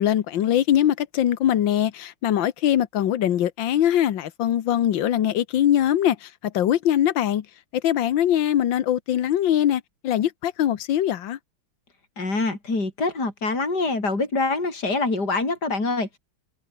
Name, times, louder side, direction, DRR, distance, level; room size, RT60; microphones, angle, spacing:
voice 1, 0.0-7.5 7.7-11.4, left 11 dB, 65° left, 1.8 m, -22 dB
voice 2, 12.2-16.2, left 3 dB, 50° left, 6.0 m, -25 dB
omnidirectional pair, 2.3 m